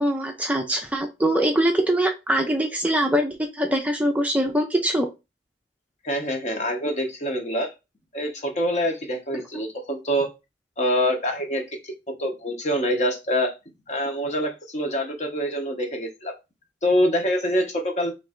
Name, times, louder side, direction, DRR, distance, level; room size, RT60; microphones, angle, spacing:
voice 1, 0.0-5.1 9.5-9.6, right 1 dB, 10° right, 2 dB, 0.5 m, -23 dB
voice 2, 6.0-7.7 8.1-10.3 10.8-13.5 13.9-16.3 16.8-18.1, equal, 40° left, 3 dB, 1.0 m, -25 dB
3.2 x 3.1 x 3.6 m, 0.25 s
head